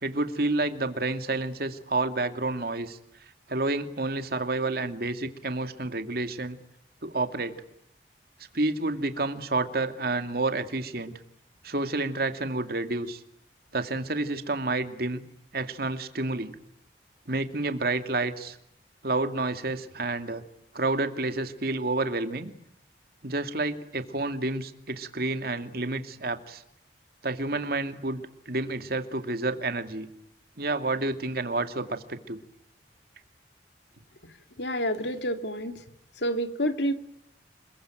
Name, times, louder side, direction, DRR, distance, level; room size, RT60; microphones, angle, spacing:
voice 1, 0.0-3.0 3.5-6.6 7.0-7.6 8.5-11.2 11.6-13.2 13.7-15.2 15.5-16.6 17.3-18.6 19.0-20.4 20.7-22.5 23.2-26.6 27.2-30.1 30.6-32.4, right 2 dB, 60° right, 8 dB, 2.5 m, -29 dB
voice 2, 34.6-35.8 36.2-36.9, equal, 75° left, 8 dB, 2.5 m, -28 dB
27.5 x 22.5 x 9.2 m, 0.77 s
head